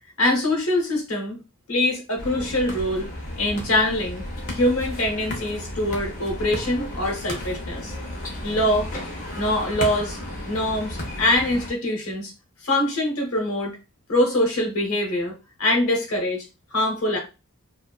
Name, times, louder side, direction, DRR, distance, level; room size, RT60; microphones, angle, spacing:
voice 1, 0.2-1.4 1.7-3.1 3.4-4.2 4.5-7.9 8.4-8.9 9.4-10.2 10.5-12.3 12.6-13.8 14.1-15.3 15.6-16.4 16.7-17.2, left 1 dB, 75° left, 0 dB, 0.9 m, -23 dB
sound 1, 2.2-11.7, left 1 dB, 35° left, 0.6 m, -33 dB
2.5 x 2.2 x 2.3 m, 0.29 s
head